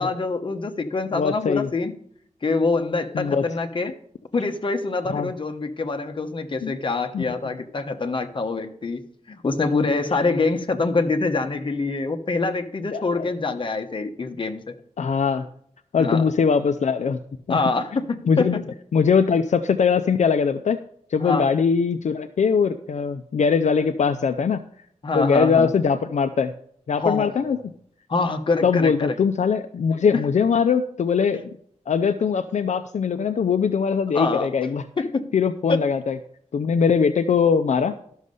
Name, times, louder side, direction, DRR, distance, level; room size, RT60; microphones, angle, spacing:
voice 1, 0.0-1.9 2.4-4.0 4.3-9.0 9.3-14.7 16.0-16.2 17.5-18.5 21.2-21.5 25.0-25.7 27.0-27.4 28.1-29.2 34.1-34.5 35.0-35.3 35.7-35.8, left 3 dB, 40° left, 6 dB, 1.1 m, -25 dB
voice 2, 1.1-1.7 3.1-3.4 5.1-5.3 6.6-6.8 7.1-7.3 12.9-13.3 15.0-15.5 15.9-17.2 17.5-17.6 18.3-18.6 18.9-20.8 21.1-24.6 25.1-26.5 26.9-27.6 28.6-31.4 31.9-34.8 35.3-36.2 36.5-38.1, left 6 dB, 70° left, 8 dB, 0.5 m, -21 dB
12.5 x 6.4 x 5.4 m, 0.65 s
wide cardioid pair, 135°, 13 cm